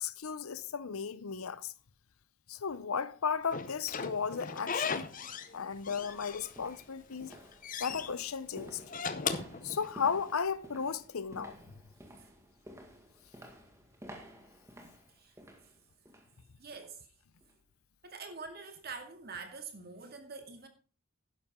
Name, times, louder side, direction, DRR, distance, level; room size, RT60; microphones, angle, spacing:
voice 1, 0.0-1.7 2.5-5.1 5.5-7.3 7.8-8.8 9.6-11.6, left 6 dB, 75° left, 0.7 m, -35 dB
Slam / Squeak, 3.5-5.5 5.8-6.8 7.2-8.1 8.8-10.3, left 5 dB, 35° left, 0.8 m, -37 dB
sound 1, 5.1-16.4 16.7-17.0 17.4-17.5, equal, 15° right, 1.8 m, -53 dB
voice 2, 16.6-17.0 18.0-20.7, right 4 dB, 45° right, 2.1 m, -45 dB
11.5 x 10.5 x 3.7 m
head